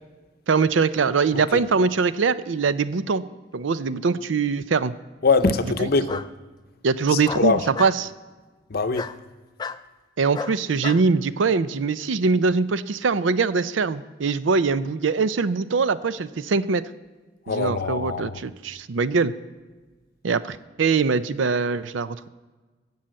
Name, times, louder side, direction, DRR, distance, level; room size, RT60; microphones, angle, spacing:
voice 1, 0.5-3.2 3.5-4.9 6.8-8.1 10.2-16.8 17.5-19.3 20.2-22.2, right 4 dB, 85° right, 0.5 m, -22 dB
Bark, 3.9-4.5 6.1-6.3 7.2-8.0 8.9-9.2 9.6-9.8 10.3-11.0, left 5 dB, 20° left, 0.3 m, -33 dB
voice 2, 5.2-6.2 7.1-7.6 8.7-9.1 17.5-18.4, left 4 dB, 50° left, 0.7 m, -23 dB
16.5 x 5.6 x 7.6 m
head